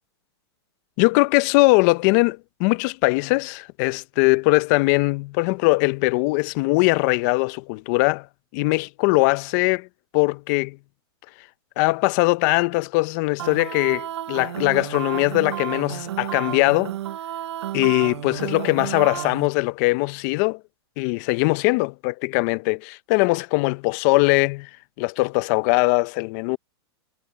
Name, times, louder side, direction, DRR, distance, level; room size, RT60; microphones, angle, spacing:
voice 1, 1.0-8.3 8.5-9.9 10.1-10.8 11.8-16.9 17.7-20.6 21.0-24.7 25.0-26.6, left 25 dB, 40° left, 0.7 m, -21 dB
sound 1, 13.4-19.5, right 12 dB, 85° right, 0.6 m, -32 dB
hypercardioid pair, 145°, 14 cm